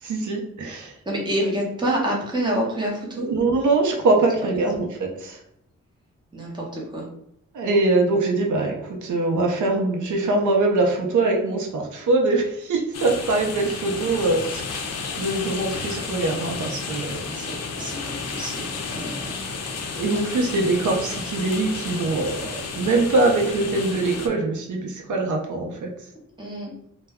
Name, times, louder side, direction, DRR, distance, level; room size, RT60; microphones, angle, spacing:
voice 1, 0.0-0.9 3.2-5.4 7.5-14.9 15.2-17.3 19.9-25.9, right 2 dB, 80° right, 1 dB, 0.6 m, -23 dB
voice 2, 1.1-3.3 6.3-7.1 17.2-19.8 26.4-26.7, right 1 dB, 15° right, -3 dB, 0.7 m, -28 dB
sound 1, 12.9-24.3, left 4 dB, 60° left, 0.4 m, -32 dB
2.1 x 2.1 x 3.5 m, 0.76 s
wide cardioid pair, 145°, 29 cm